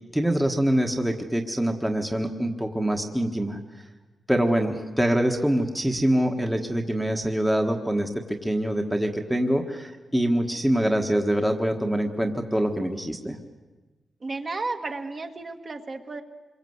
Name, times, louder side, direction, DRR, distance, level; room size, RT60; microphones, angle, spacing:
voice 1, 0.1-3.6 4.3-13.4, right 1 dB, 5° right, 3 dB, 1.4 m, -24 dB
voice 2, 14.2-16.2, right 3 dB, 35° right, 4 dB, 1.7 m, -33 dB
27.0 x 23.5 x 8.0 m, 1.2 s
wide cardioid pair, 155°, 0 cm